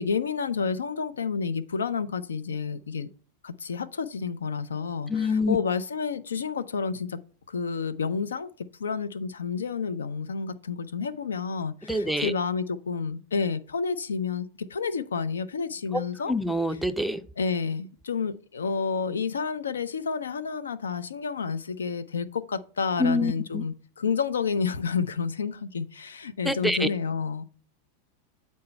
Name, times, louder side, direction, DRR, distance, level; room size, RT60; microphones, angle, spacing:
voice 1, 0.0-3.1 3.4-7.2 7.5-16.3 17.4-27.4, left 5 dB, 70° left, 0.6 m, -30 dB
voice 2, 5.1-5.6 11.9-12.3 16.3-17.2 23.0-23.6 26.5-26.9, left 1 dB, ahead, 0.5 m, -26 dB
8.6 x 4.2 x 4.4 m
figure-of-eight pair, 90°, 0 cm